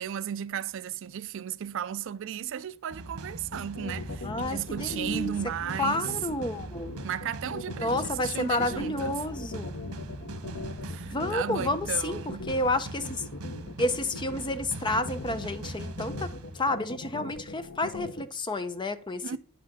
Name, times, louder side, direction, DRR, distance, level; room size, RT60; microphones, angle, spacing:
voice 1, 0.0-6.1 7.0-9.2 10.8-12.5 19.2-19.4, right 9 dB, 55° right, 0.4 m, -35 dB
sound 1, 2.9-17.1, right 2 dB, 90° right, 1.2 m, -41 dB
sound 2, 3.5-18.2, left 3 dB, 65° left, 1.0 m, -40 dB
voice 2, 4.2-5.3 5.8-6.9 7.8-9.8 11.1-13.3 13.8-19.3, left 2 dB, 20° left, 0.7 m, -30 dB
9.0 x 5.9 x 6.0 m
head